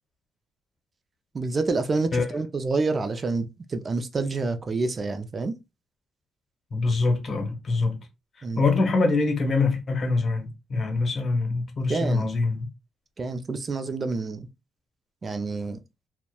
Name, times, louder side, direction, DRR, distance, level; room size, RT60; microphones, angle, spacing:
voice 1, 1.3-5.5 8.4-8.6 11.9-12.3 13.2-14.5 15.2-15.8, right 3 dB, 35° right, 0.4 m, -28 dB
voice 2, 6.7-8.1 8.4-12.7, left 3 dB, 45° left, 0.8 m, -24 dB
2.8 x 2.1 x 2.2 m
cardioid pair, 90°, 0 cm